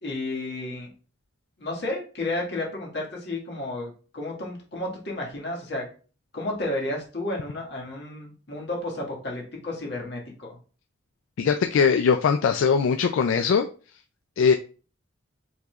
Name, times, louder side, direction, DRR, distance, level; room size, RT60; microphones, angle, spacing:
voice 1, 0.0-0.9 1.6-5.9 6.3-10.6, left 2 dB, 55° left, -2 dB, 1.7 m, -32 dB
voice 2, 11.4-13.7 14.4-14.5, left 6 dB, 80° left, 7 dB, 0.3 m, -21 dB
4.8 x 3.9 x 2.3 m, 0.38 s
head